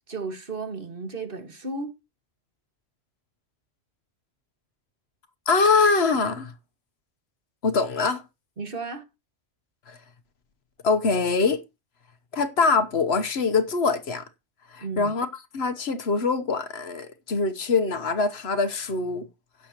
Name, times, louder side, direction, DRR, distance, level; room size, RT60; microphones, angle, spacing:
voice 1, 0.1-1.9 8.6-9.0 14.8-15.1, right 3 dB, 50° right, 1.9 m, -34 dB
voice 2, 5.5-6.5 7.6-8.2 9.9-10.0 10.8-11.6 12.3-14.2 14.7-15.3 15.5-19.3, left 4 dB, 65° left, 1.3 m, -23 dB
16.5 x 6.9 x 3.0 m
omnidirectional pair, 1.1 m